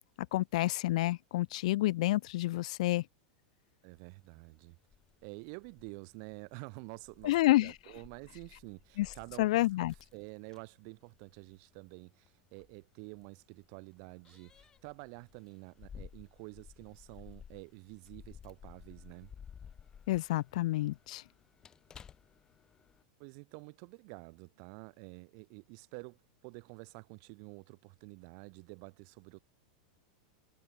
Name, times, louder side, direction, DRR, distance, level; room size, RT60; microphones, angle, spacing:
voice 1, 0.3-3.0 7.2-7.7 9.0-9.1 9.4-9.9 20.1-21.2, left 17 dB, 60° left, 0.8 m, -29 dB
voice 2, 3.8-4.8 5.2-19.3 23.2-29.4, right 40 dB or more, 40° right, 3.5 m, -49 dB
Keys jangling, 4.0-23.0, left 7 dB, 15° left, 4.7 m, -56 dB
supercardioid pair, 175°, 4 cm